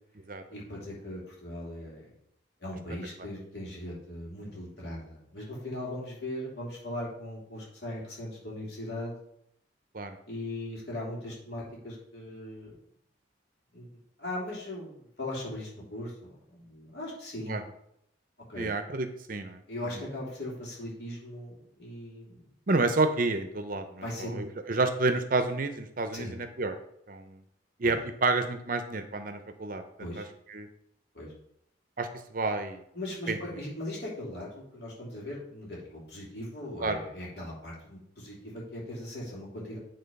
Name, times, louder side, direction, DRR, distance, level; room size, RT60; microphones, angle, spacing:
voice 1, 0.5-2.0 2.6-9.1 10.3-12.7 13.7-13.9 14.2-17.7 18.5-18.7 19.7-22.4 23.9-24.5 26.1-26.3 27.8-28.0 30.0-30.3 31.1-31.3 32.9-39.8, left 1 dB, 60° left, -5 dB, 3.2 m, -39 dB
voice 2, 18.6-19.6 22.7-26.7 27.1-27.4 27.8-30.7 32.0-32.8 33.3-33.4 36.8-37.0, right 3 dB, 45° right, 8 dB, 0.7 m, -30 dB
9.1 x 3.9 x 5.3 m, 0.75 s
head